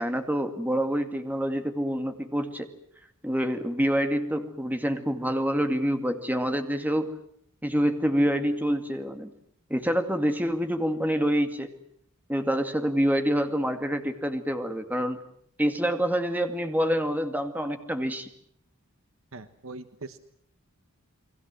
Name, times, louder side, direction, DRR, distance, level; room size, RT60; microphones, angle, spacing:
voice 1, 0.0-2.7 3.2-7.1 7.6-9.3 9.7-11.7 12.3-15.2 15.6-18.3, equal, 10° right, 7 dB, 2.1 m, -26 dB
voice 2, 19.3-20.2, right 3 dB, 65° right, 11 dB, 1.4 m, -41 dB
30.0 x 22.0 x 7.6 m, 0.68 s
head